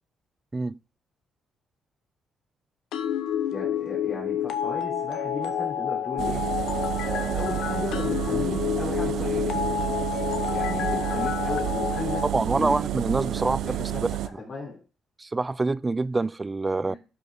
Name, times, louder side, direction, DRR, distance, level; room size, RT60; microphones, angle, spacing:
sound 1, 2.9-12.3, left 9 dB, 80° left, 1.0 m, -29 dB
voice 1, 3.5-6.4 7.0-9.6 10.5-12.2 12.5-12.8 13.3-14.0 14.4-14.8 16.9-17.0, left 3 dB, 45° left, 3.4 m, -35 dB
sound 2, 6.2-14.3, right 13 dB, 80° right, 0.6 m, -30 dB
voice 2, 12.3-13.8 15.2-17.0, right 3 dB, 20° right, 0.3 m, -26 dB
12.0 x 6.1 x 3.7 m
cardioid pair, 90°, 0 cm